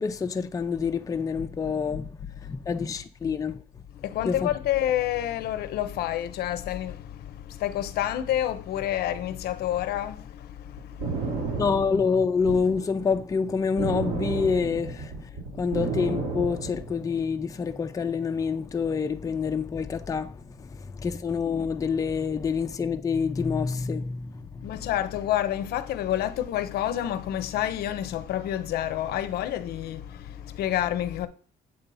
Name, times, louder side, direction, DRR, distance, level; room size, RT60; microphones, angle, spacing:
voice 1, 0.0-3.6 4.2-4.5 11.5-24.8, left 5 dB, 20° left, 0.5 m, -27 dB
voice 2, 3.9-11.7 15.5-15.6 24.6-31.3, left 12 dB, 70° left, 0.6 m, -29 dB
sound 1, 10.8-12.8 13.8-17.1, right 4 dB, 80° right, 2.7 m, -31 dB
7.9 x 2.8 x 5.4 m
cardioid pair, 110°, 17 cm